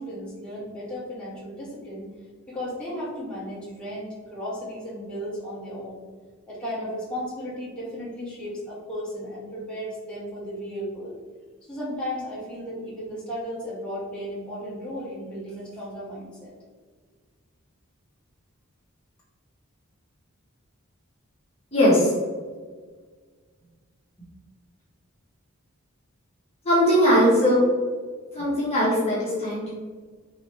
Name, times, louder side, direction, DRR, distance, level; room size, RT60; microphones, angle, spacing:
voice 1, 0.0-2.1 2.5-6.0 6.5-11.2 11.6-16.5, equal, 5° left, -9 dB, 1.4 m, -35 dB
voice 2, 21.7-22.1 26.6-27.6 28.3-29.7, equal, 30° left, -7 dB, 1.2 m, -20 dB
5.1 x 3.1 x 3.1 m, 1.5 s
head